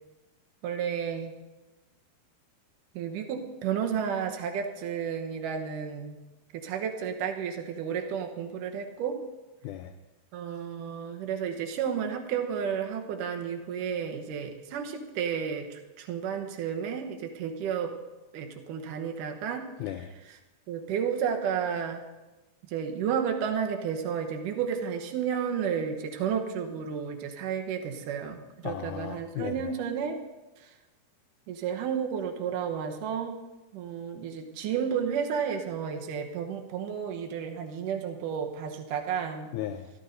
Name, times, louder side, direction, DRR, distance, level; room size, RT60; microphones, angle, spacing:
voice 1, 0.6-1.3 2.9-6.2 6.5-9.2 10.3-17.9 18.3-19.7 20.3-20.4 20.7-22.0 22.7-30.2 30.6-30.7 31.5-33.4 33.7-39.5, right 7 dB, 70° right, 4 dB, 2.5 m, -32 dB
voice 2, 19.8-20.1 28.6-29.7 39.5-39.9, left 12 dB, 85° left, 6 dB, 1.8 m, -36 dB
25.0 x 14.0 x 2.7 m, 1.1 s
omnidirectional pair, 4.1 m